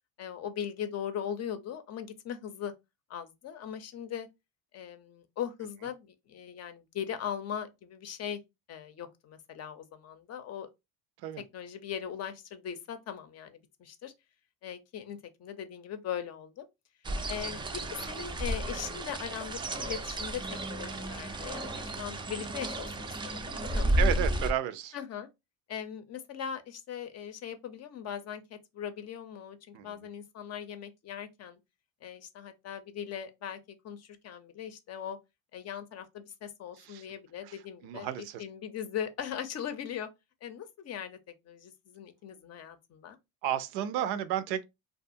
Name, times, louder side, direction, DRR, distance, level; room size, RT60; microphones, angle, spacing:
voice 1, 0.2-2.7 3.1-4.3 4.7-8.4 8.7-10.7 11.4-14.1 14.6-16.7 17.3-20.4 20.7-23.9 24.9-25.3 25.7-31.6 32.0-33.6 33.8-35.2 35.5-40.1 40.4-43.2, left 9 dB, 45° left, 0.6 m, -39 dB
sound 1, 17.0-24.5, right 1 dB, 15° right, 0.3 m, -32 dB
voice 2, 24.0-25.0 29.7-30.0 36.8-37.1 37.4-37.5 37.8-38.4 43.4-44.6, right 11 dB, 80° right, 0.5 m, -32 dB
2.4 x 2.4 x 2.6 m
supercardioid pair, 85°, 37 cm